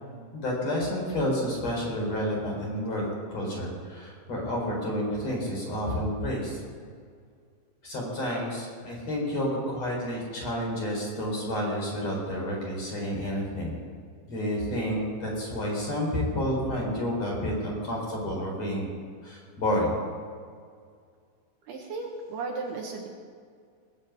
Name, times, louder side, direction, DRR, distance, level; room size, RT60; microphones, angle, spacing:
voice 1, 0.3-3.0 3.3-6.6 7.8-13.8 14.3-19.0 19.2-20.0, equal, 35° left, -2 dB, 4.9 m, -30 dB
voice 2, 21.7-23.1, right 3 dB, 65° right, 0 dB, 3.0 m, -35 dB
20.0 x 8.0 x 8.5 m, 2.1 s
omnidirectional pair, 5.4 m